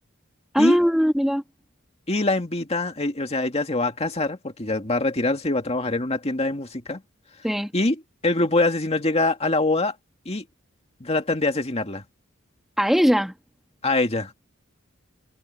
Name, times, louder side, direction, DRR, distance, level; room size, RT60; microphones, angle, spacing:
voice 1, 0.5-1.4 7.4-7.7 12.8-13.3, equal, ahead, 1.4 m, -20 dB
voice 2, 2.1-7.0 7.7-8.0 8.2-9.9 10.3-10.4 11.0-12.0 13.8-14.3, left 2 dB, 30° left, 2.2 m, -24 dB
head